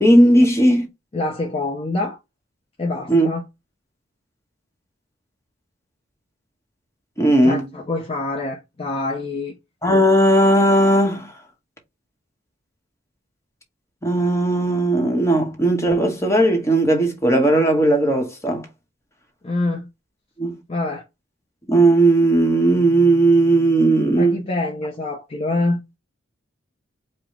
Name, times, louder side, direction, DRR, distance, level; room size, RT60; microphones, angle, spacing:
voice 1, 0.0-0.9 3.1-3.3 7.2-7.6 9.8-11.3 14.0-18.7 20.4-20.5 21.7-24.4, right 1 dB, 15° left, 1.1 m, -16 dB
voice 2, 1.1-2.2 2.8-3.4 7.4-9.5 19.4-19.9 20.7-21.0 24.2-25.8, left 2 dB, 30° left, 0.7 m, -25 dB
4.9 x 2.2 x 3.7 m
head